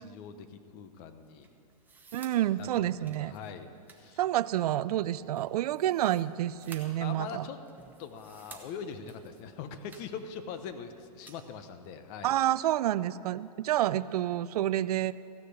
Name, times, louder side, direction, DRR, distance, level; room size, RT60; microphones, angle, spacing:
voice 1, 0.0-1.5 2.6-4.2 7.0-7.6 8.0-12.3, left 6 dB, 40° left, 9 dB, 0.9 m, -42 dB
sound 1, 1.2-11.5, right 4 dB, 10° right, 1.1 m, -56 dB
voice 2, 2.1-3.4 4.2-7.5 12.2-15.1, right 13 dB, 75° right, 17 dB, 0.4 m, -29 dB
15.0 x 6.6 x 7.9 m, 2.4 s
hypercardioid pair, 135°, 20 cm